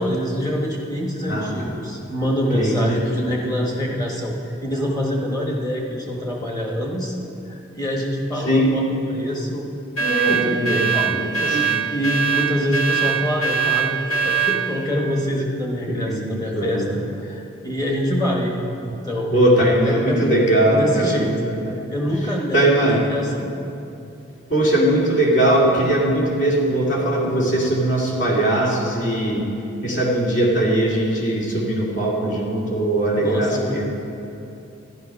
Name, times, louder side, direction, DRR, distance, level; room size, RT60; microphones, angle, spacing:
voice 1, 0.0-7.1 7.5-9.7 10.2-11.1 11.5-18.5 18.8-19.5 19.8-20.2 20.7-21.3 21.9-23.5 33.1-33.8, equal, 20° left, -1 dB, 1.2 m, -25 dB
voice 2, 1.3-1.7 2.5-3.4 8.4-8.7 10.0-11.8 15.9-16.9 19.3-21.8 22.5-23.0 24.5-29.4 29.8-33.8, right 1 dB, 60° left, -4 dB, 2.4 m, -20 dB
sound 1, 10.0-14.6, right 6 dB, 90° left, 1.7 m, -21 dB
12.5 x 11.0 x 5.4 m, 2.8 s
head